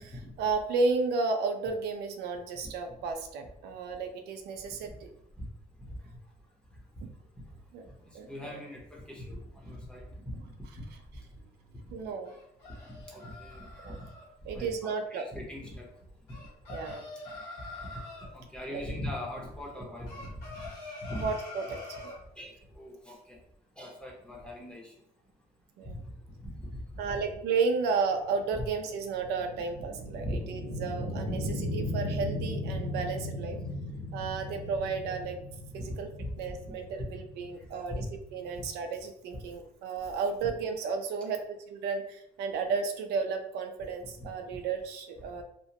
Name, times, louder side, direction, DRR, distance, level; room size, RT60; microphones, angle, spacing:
voice 1, 0.4-5.1 7.0-7.1 7.7-7.9 8.1-8.6 11.9-12.3 13.8-14.0 14.5-15.2 16.7-17.0 18.7-18.8 21.2-21.8 25.8-26.0 27.0-33.6 34.1-35.4 35.7-36.1 36.4-38.0 38.3-41.4 41.7-45.4, right 4 dB, 75° right, 5 dB, 0.4 m, -33 dB
voice 2, 8.0-10.4 10.8-10.9 12.8-13.9 14.5-15.9 16.3-16.4 18.3-20.3 21.0-21.3 22.4-23.4 23.8-24.9 25.9-26.0 26.4-27.0 30.2-30.4 31.3-31.4 36.2-36.5 37.0-37.1 37.9-38.0, left 1 dB, 5° left, -2 dB, 0.7 m, -40 dB
sound 1, 12.2-14.2 16.3-18.3 20.1-22.2, left 3 dB, 90° left, 1.2 m, -45 dB
sound 2, 27.9-38.6, left 1 dB, 55° left, 1.4 m, -37 dB
2.9 x 2.1 x 2.8 m, 0.75 s
cardioid pair, 110°, 17 cm